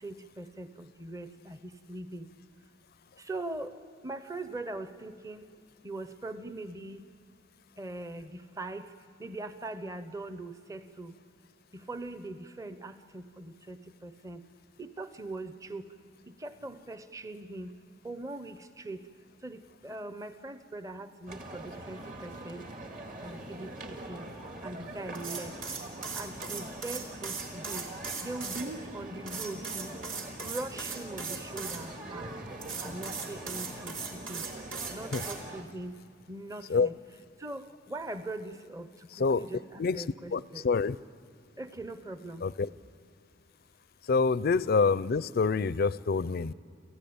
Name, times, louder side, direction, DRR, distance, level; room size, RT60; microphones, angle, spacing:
voice 1, 0.0-2.3 3.2-3.7 4.0-5.4 5.8-7.0 7.8-8.9 9.2-11.1 11.7-14.4 14.8-15.9 16.4-17.7 18.0-19.0 19.4-22.7 23.2-24.3 24.6-25.5 26.2-27.9 28.2-30.0 30.4-32.3 32.8-34.4 34.9-36.0 36.3-37.0 37.4-38.9 39.2-40.6 41.6-42.4, right 2 dB, 15° right, 10 dB, 0.7 m, -41 dB
sound 1, 21.3-35.6, right 1 dB, 45° right, 2.0 m, -43 dB
sound 2, 25.1-28.7 29.3-31.8 32.6-35.4, right 5 dB, 70° right, 3.6 m, -38 dB
voice 2, 39.2-39.5 39.8-40.0 40.3-41.0 42.4-42.7 44.1-46.5, left 4 dB, 50° left, 19 dB, 0.5 m, -26 dB
29.5 x 15.0 x 8.7 m, 2.4 s
head